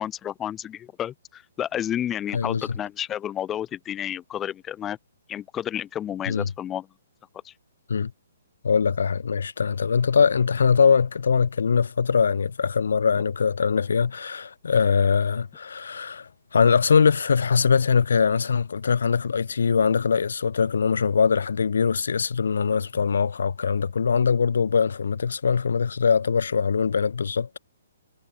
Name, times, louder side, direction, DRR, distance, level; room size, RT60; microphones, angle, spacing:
voice 1, 0.0-5.0 5.3-6.9 7.4-7.5, left 10 dB, 10° left, 0.6 m, -31 dB
voice 2, 2.3-2.8 6.3-6.5 7.9-8.1 8.6-27.6, left 6 dB, 80° left, 0.3 m, -22 dB
hypercardioid pair, 175°, 0 cm